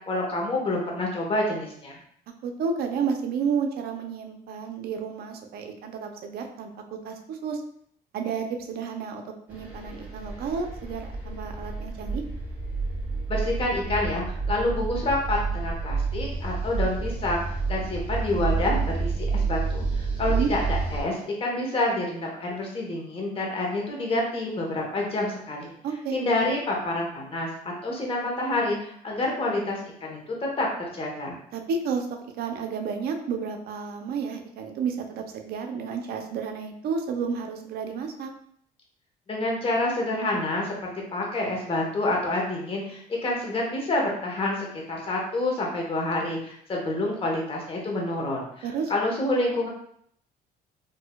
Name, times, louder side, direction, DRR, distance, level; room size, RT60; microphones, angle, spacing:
voice 1, 0.1-2.0 13.3-17.4 17.7-25.7 26.1-31.4 39.3-49.7, left 2 dB, 35° left, -1 dB, 1.1 m, -28 dB
voice 2, 2.4-7.6 8.1-12.2 20.3-20.5 25.8-26.2 31.5-32.1 32.4-38.3 48.6-48.9, right 6 dB, 65° right, 5 dB, 0.6 m, -31 dB
sound 1, 9.5-21.0, right 4 dB, 10° right, 1.4 m, -29 dB
4.1 x 2.6 x 2.3 m, 0.66 s
cardioid pair, 110°, 17 cm